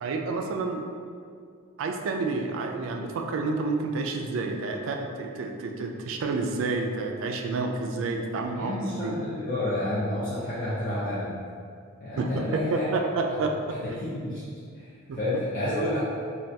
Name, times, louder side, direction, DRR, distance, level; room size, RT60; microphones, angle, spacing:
voice 1, 0.0-0.9 1.8-9.1 12.2-13.5 15.1-15.2, right 3 dB, 70° right, 3 dB, 0.3 m, -29 dB
voice 2, 8.5-11.4 12.0-13.0 13.3-13.4 13.7-14.4 14.7-16.0, left 1 dB, 40° left, -11 dB, 0.5 m, -30 dB
3.3 x 2.3 x 2.6 m, 2.2 s
head